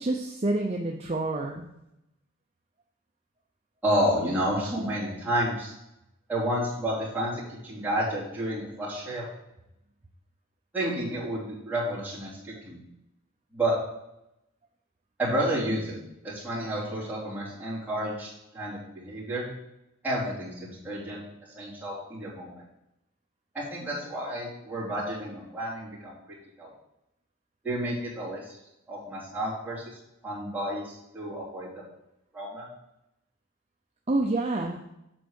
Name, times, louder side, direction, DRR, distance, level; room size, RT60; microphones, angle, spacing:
voice 1, 0.0-1.6 34.1-34.8, right 2 dB, 30° right, 1 dB, 0.6 m, -28 dB
voice 2, 3.8-5.7 6.3-9.3 10.7-12.8 13.5-13.7 15.2-16.0 16.2-19.5 20.0-21.2 21.5-22.6 23.5-26.2 26.6-26.7 27.6-28.5 28.9-29.8 30.2-31.8 32.3-32.6, right 1 dB, 10° right, -8 dB, 3.1 m, -30 dB
7.9 x 4.6 x 6.5 m, 0.86 s
head